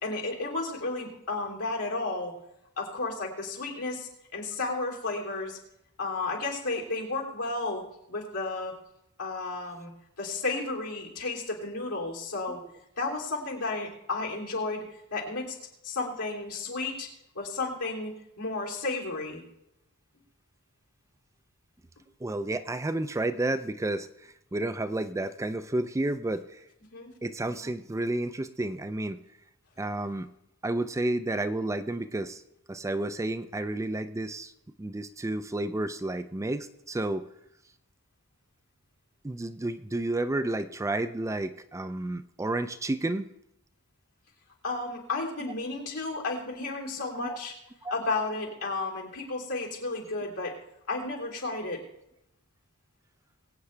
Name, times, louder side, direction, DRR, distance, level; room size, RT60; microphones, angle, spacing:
voice 1, 0.0-2.3 2.8-5.6 6.0-8.7 9.2-9.9 10.2-12.6 13.0-14.8 15.1-15.6 15.8-17.1 17.3-18.1 18.4-19.4 26.9-27.1 44.6-47.6 47.9-50.5 50.9-51.8, left 3 dB, 80° left, -2 dB, 3.3 m, -32 dB
voice 2, 22.2-24.1 24.5-26.6 27.2-29.2 29.8-30.3 30.6-32.4 32.7-34.5 34.8-37.2 39.2-43.3 47.1-47.4 47.8-47.9, right 2 dB, 15° right, 10 dB, 0.4 m, -31 dB
22.0 x 8.6 x 3.3 m, 0.84 s
head